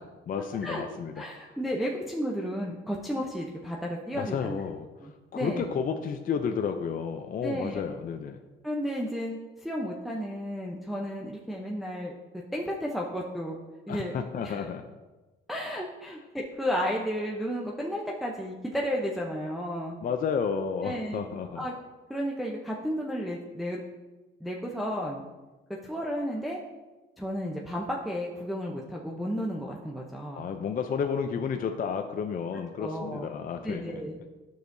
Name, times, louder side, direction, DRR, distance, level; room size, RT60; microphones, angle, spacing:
voice 1, 0.3-1.2 4.1-8.4 13.9-14.8 20.0-21.6 30.3-34.0, left 6 dB, 45° left, 6 dB, 0.5 m, -31 dB
voice 2, 1.2-4.6 5.0-5.7 7.4-7.9 8.6-12.1 12.5-13.6 13.9-14.1 14.4-14.6 15.5-20.0 20.8-21.2 21.6-21.7 22.1-23.8 24.4-25.3 25.8-26.6 27.2-30.4 32.8-33.3 33.6-34.2, equal, ahead, -3 dB, 0.7 m, -33 dB
9.5 x 6.5 x 2.7 m, 1.2 s
cardioid pair, 110°, 20 cm